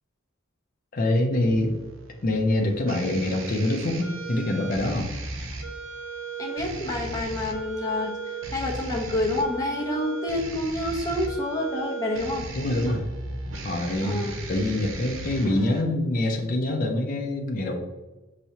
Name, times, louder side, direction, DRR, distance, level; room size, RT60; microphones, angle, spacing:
voice 1, 0.9-1.8 2.2-5.1 12.5-13.0 13.6-17.8, left 1 dB, 45° left, 2 dB, 0.5 m, -25 dB
sound 1, 1.3-15.8, right 3 dB, 75° right, 0.6 m, -36 dB
voice 2, 6.4-12.5 14.0-14.3, left 1 dB, 15° left, -3 dB, 0.8 m, -28 dB
5.6 x 3.1 x 2.7 m, 1.1 s
head